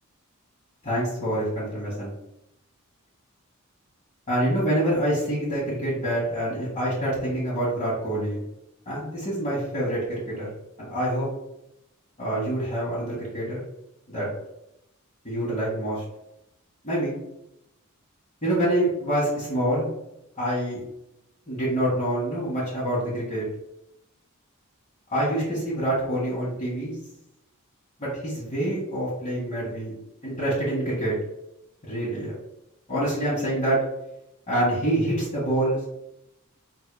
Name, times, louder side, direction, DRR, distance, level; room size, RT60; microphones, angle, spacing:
voice 1, 0.8-2.1 4.3-8.4 8.8-10.0 10.4-10.5 10.8-11.3 12.2-13.6 14.1-14.3 15.2-16.0 16.8-17.2 18.4-19.9 20.4-20.8 21.5-23.5 25.1-27.0 28.0-29.9 30.2-31.1 31.9-32.3 32.9-33.8 34.5-35.8, right 1 dB, 35° left, -8 dB, 1.5 m, -26 dB
4.8 x 4.1 x 2.2 m, 0.84 s
head